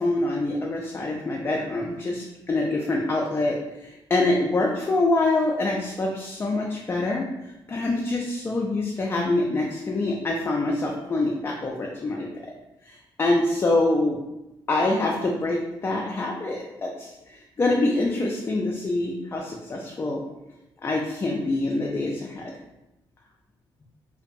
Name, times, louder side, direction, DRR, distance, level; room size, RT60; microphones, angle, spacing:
voice 1, 0.0-7.3 7.7-12.3 12.8-14.2 14.7-20.2 20.8-22.5, left 2 dB, 25° left, -1 dB, 0.3 m, -25 dB
2.6 x 2.1 x 2.5 m, 0.94 s
cardioid pair, 85°, 9 cm